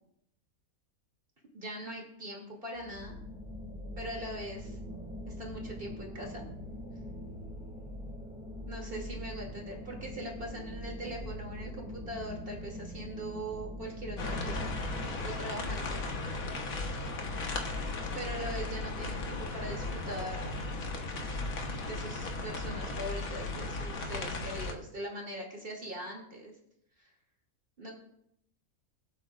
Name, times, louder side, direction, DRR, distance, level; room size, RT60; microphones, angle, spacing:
voice 1, 1.5-3.2 4.0-4.8 5.3-6.5 8.7-14.7 15.2-16.0 18.1-20.6 21.9-26.5 27.0-27.1 27.8-27.9, right 1 dB, 40° right, 0 dB, 2.7 m, -41 dB
sound 1, 2.8-15.2, left 1 dB, 5° right, 2.0 m, -42 dB
sound 2, 14.2-24.7, left 2 dB, 70° left, 1.7 m, -36 dB
21.0 x 7.8 x 2.4 m, 0.72 s
omnidirectional pair, 1.5 m